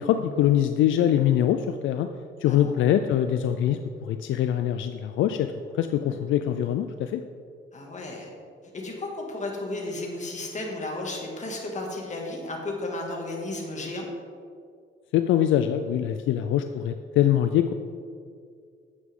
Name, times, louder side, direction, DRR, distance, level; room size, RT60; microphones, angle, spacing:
voice 1, 0.0-2.1 2.4-7.2 15.1-17.7, left 11 dB, 80° left, 8 dB, 0.4 m, -23 dB
voice 2, 7.7-8.3 8.7-14.1, left 2 dB, 35° left, 0 dB, 2.0 m, -33 dB
9.5 x 8.2 x 3.7 m, 2.2 s
cardioid pair, 90°, 20 cm